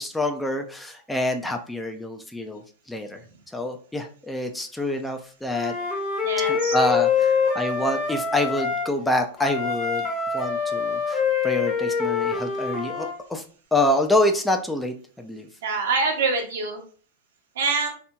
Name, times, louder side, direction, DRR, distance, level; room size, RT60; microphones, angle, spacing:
voice 1, 0.0-2.6 2.9-3.2 3.5-5.8 6.5-10.1 10.3-13.4 13.7-15.5, left 1 dB, 5° left, 4 dB, 0.4 m, -26 dB
Wind instrument woodwind instrument, 5.5-8.9 9.4-13.1, left 6 dB, 25° left, 0.8 m, -25 dB
voice 2, 6.2-6.8 15.6-16.8 17.5-17.9, right 4 dB, 75° right, 3 dB, 0.8 m, -25 dB
2.8 x 2.7 x 2.2 m, 0.42 s
hypercardioid pair, 120°, 0 cm